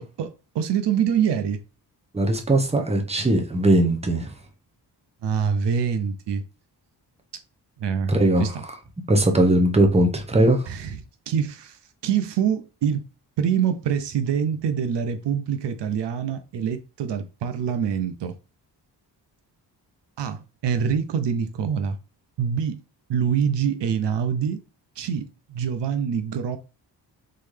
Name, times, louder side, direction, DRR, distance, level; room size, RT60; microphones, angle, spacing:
voice 1, 0.0-1.6 5.2-6.4 7.8-8.6 10.7-11.0 11.3-13.1 13.4-18.3 20.2-22.0 22.4-22.8 23.1-24.6 25.0-26.6, right 7 dB, 80° right, 0.7 m, -25 dB
voice 2, 2.1-4.3 8.1-8.5 9.1-10.6, right 1 dB, 15° right, 0.9 m, -19 dB
3.9 x 3.8 x 3.2 m
cardioid pair, 90°, 42 cm